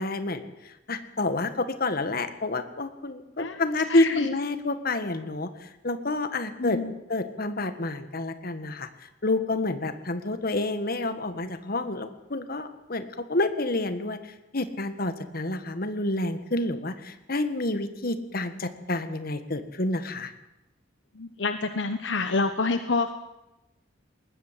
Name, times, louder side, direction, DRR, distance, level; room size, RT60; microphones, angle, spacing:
voice 1, 0.0-6.8 7.1-20.3, left 2 dB, 50° left, 10 dB, 1.7 m, -29 dB
voice 2, 3.9-4.3 6.6-6.9 21.1-23.1, left 3 dB, 70° left, 9 dB, 1.1 m, -27 dB
20.0 x 20.0 x 7.6 m, 0.94 s
head